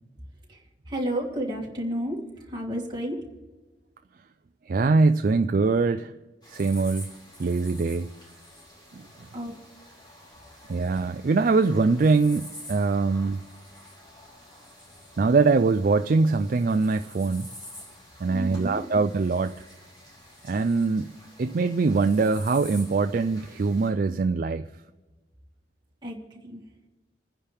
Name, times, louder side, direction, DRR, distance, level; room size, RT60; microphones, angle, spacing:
voice 1, 0.5-3.2 9.3-9.5 18.2-18.8 26.0-26.6, equal, 25° right, -2 dB, 2.6 m, -32 dB
voice 2, 4.7-6.1 6.5-7.1 7.4-8.1 8.9-9.0 10.7-13.4 15.2-17.5 18.2-19.5 20.5-21.1 21.4-24.6, right 4 dB, 50° right, 9 dB, 0.4 m, -23 dB
sound 1, 6.4-23.9, left 1 dB, 25° left, 4.5 m, -48 dB
29.0 x 10.0 x 3.5 m, 1.2 s
head